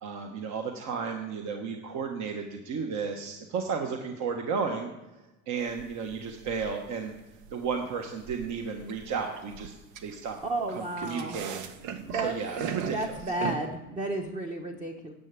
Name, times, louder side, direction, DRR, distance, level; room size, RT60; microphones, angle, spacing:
voice 1, 0.0-4.9 5.5-7.1 7.5-9.7 10.0-10.4 10.7-13.6, right 5 dB, 40° right, 4 dB, 1.2 m, -33 dB
sound 1, 5.6-13.6, right 7 dB, 80° right, 1.3 m, -39 dB
voice 2, 10.4-11.4 12.0-12.4 12.9-15.1, right 2 dB, 15° right, 2 dB, 1.0 m, -32 dB
10.5 x 6.9 x 8.9 m, 1.1 s
cardioid pair, 150°, 42 cm